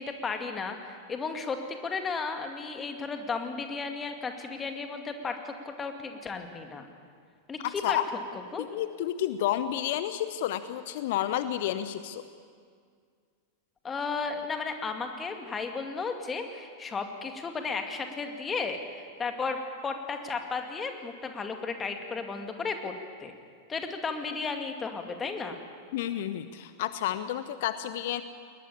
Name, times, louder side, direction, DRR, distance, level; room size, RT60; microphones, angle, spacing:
voice 1, 0.0-6.9 7.5-8.0 8.3-8.7 13.8-22.9 23.2-23.3 23.7-25.6, left 4 dB, 20° left, 5 dB, 2.2 m, -34 dB
voice 2, 7.6-8.0 8.6-12.2 25.9-28.2, left 12 dB, 50° left, 12 dB, 0.8 m, -30 dB
21.5 x 20.0 x 8.7 m, 2.1 s
figure-of-eight pair, 90°, 0 cm